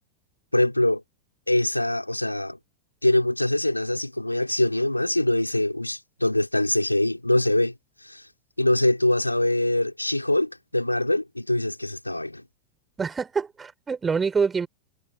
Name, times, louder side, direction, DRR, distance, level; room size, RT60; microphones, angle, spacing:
voice 1, 0.5-1.0 1.5-2.6 3.0-7.7 8.0-8.3 8.6-12.4, left 1 dB, 85° left, 5.2 m, -23 dB
voice 2, 13.0-14.7, right 5 dB, 15° right, 4.3 m, -25 dB
figure-of-eight pair, 90°, 0 cm